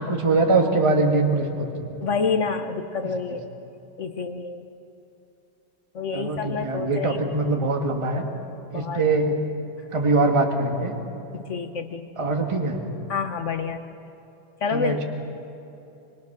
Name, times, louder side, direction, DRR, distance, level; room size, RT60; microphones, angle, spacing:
voice 1, 0.0-2.0 6.1-8.2 8.7-9.4 9.9-10.9 12.2-12.8 14.7-15.0, right 3 dB, 15° right, 2 dB, 1.5 m, -22 dB
voice 2, 2.0-3.4 4.0-4.6 5.9-7.2 8.7-9.0 11.3-12.3 13.1-13.9 14.6-15.0, left 5 dB, 50° left, 7 dB, 0.9 m, -28 dB
26.0 x 21.5 x 6.0 m, 2.8 s
omnidirectional pair, 2.2 m